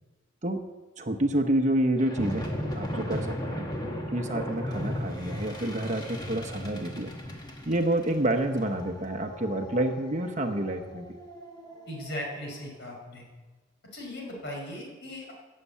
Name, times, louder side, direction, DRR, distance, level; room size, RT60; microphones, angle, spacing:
voice 1, 1.0-3.7 4.1-7.1 7.6-11.1, right 1 dB, 35° right, 5 dB, 1.0 m, -28 dB
sound 1, 2.0-12.6, left 1 dB, 20° left, 1.5 m, -37 dB
voice 2, 11.9-13.2 13.9-15.3, left 1 dB, 55° left, -1 dB, 5.2 m, -38 dB
15.5 x 7.6 x 8.3 m, 1.3 s
head